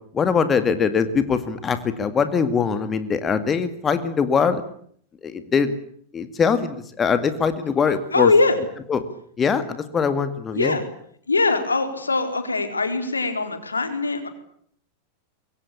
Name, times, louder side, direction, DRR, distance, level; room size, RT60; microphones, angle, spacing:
voice 1, 0.1-4.6 5.2-5.7 6.1-8.3 8.9-9.0 9.4-10.8, left 6 dB, 20° left, 11 dB, 2.1 m, -22 dB
voice 2, 8.1-8.6 10.5-10.8 11.3-14.3, left 3 dB, 75° left, 7 dB, 4.5 m, -21 dB
26.0 x 23.0 x 8.6 m, 0.63 s
figure-of-eight pair, 90°, 0 cm